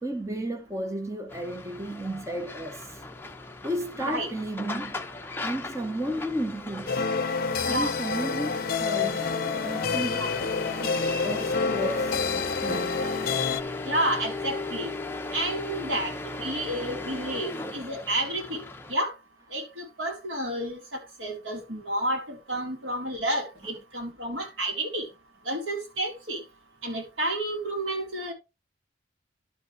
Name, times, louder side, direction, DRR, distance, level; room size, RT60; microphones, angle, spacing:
voice 1, 0.0-3.0 3.6-5.1 5.4-7.1 7.6-9.2 9.5-10.3 10.8-13.3, right 1 dB, 15° right, 1.0 m, -33 dB
sound 1, 1.3-18.9, left 3 dB, 10° left, 0.7 m, -37 dB
sound 2, 6.9-13.6, left 5 dB, 50° left, 0.6 m, -28 dB
voice 2, 10.1-10.5 13.9-14.9 15.3-18.6 18.9-19.1 19.5-25.1 25.5-26.4 26.8-28.3, right 1 dB, 85° right, 4.0 m, -30 dB
11.0 x 5.3 x 4.6 m
head